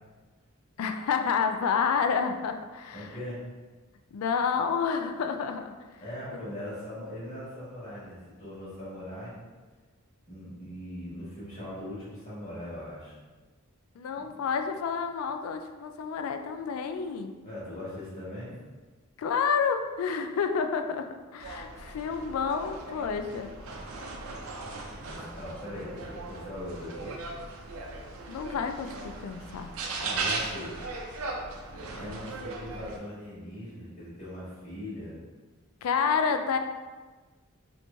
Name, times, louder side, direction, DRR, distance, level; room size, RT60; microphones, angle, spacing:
voice 1, 0.8-3.1 4.1-5.7 14.0-17.3 19.2-21.1 21.3-23.5 28.3-29.7 35.8-36.6, left 6 dB, 90° left, 6 dB, 0.3 m, -29 dB
voice 2, 2.9-3.4 6.0-9.4 10.3-13.1 14.2-14.3 17.4-18.6 24.9-27.1 29.9-30.7 31.9-35.2, left 1 dB, 40° left, -10 dB, 1.4 m, -40 dB
sound 1, 21.4-33.0, right 3 dB, 80° right, 0.5 m, -38 dB
3.0 x 2.6 x 3.3 m, 1.3 s
head